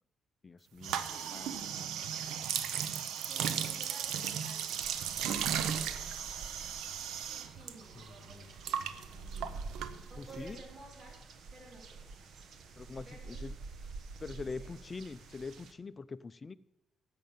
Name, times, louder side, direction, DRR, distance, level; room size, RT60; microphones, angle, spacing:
voice 1, 0.4-1.6 7.9-8.5 9.0-9.6 10.2-10.6 12.8-13.5 14.2-16.5, left 4 dB, 30° left, 14 dB, 0.5 m, -44 dB
sound 1, 0.8-7.7 8.0-10.4, right 8 dB, 85° right, 0.8 m, -36 dB
voice 2, 2.9-4.9 7.3-8.5 10.1-11.1 11.5-12.0 13.0-13.5 14.3-14.7, right 2 dB, 45° right, 0 dB, 3.7 m, -54 dB
sound 2, 4.8-15.7, right 4 dB, 65° right, 1.3 m, -48 dB
11.0 x 7.7 x 7.4 m, 0.98 s
cardioid pair, 90°, 0 cm